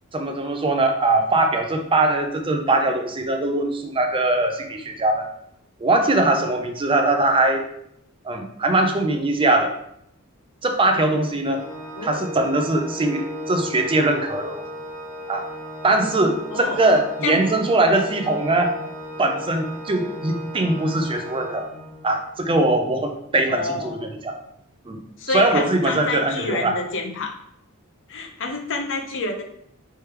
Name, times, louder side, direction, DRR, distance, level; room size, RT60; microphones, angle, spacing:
voice 1, 0.1-5.3 5.8-7.7 8.2-9.7 10.6-11.6 12.0-14.6 15.3-15.4 15.8-18.7 19.2-21.7 22.0-24.4 24.9-25.0 25.3-26.7, right 2 dB, 25° right, 4 dB, 0.5 m, -21 dB
Organ, 11.5-22.2, equal, 5° left, 1.6 m, -36 dB
voice 2, 16.5-16.9 17.2-17.4 23.5-24.1 25.2-27.3 28.1-29.4, left 3 dB, 60° left, 4 dB, 0.7 m, -28 dB
3.4 x 3.2 x 4.4 m, 0.74 s
head